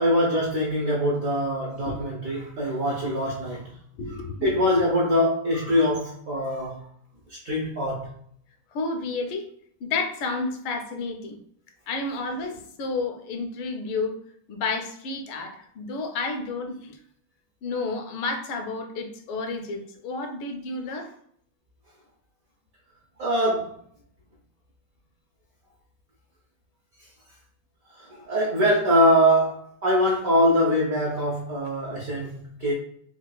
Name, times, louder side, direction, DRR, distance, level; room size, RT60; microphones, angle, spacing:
voice 1, 0.0-3.7 4.4-6.8 7.3-8.1 23.2-23.7 28.0-32.7, equal, 70° right, 0.8 m, -23 dB
voice 2, 4.0-4.5 8.7-9.5 9.8-11.4 11.9-14.2 14.5-17.0 17.6-21.1, left 3 dB, 80° left, 1.4 m, -31 dB
4.4 x 2.3 x 2.2 m
omnidirectional pair, 2.3 m